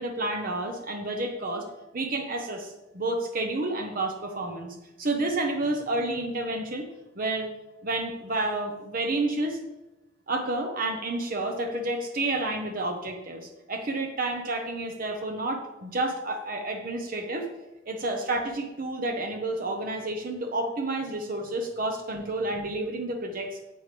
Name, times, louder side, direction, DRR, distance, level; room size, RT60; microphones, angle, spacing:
voice 1, 0.0-1.7 1.9-6.8 7.2-7.5 7.8-9.6 10.3-17.5 17.9-23.5, right 2 dB, 50° right, 3 dB, 1.0 m, -30 dB
9.6 x 8.3 x 3.4 m, 0.98 s
head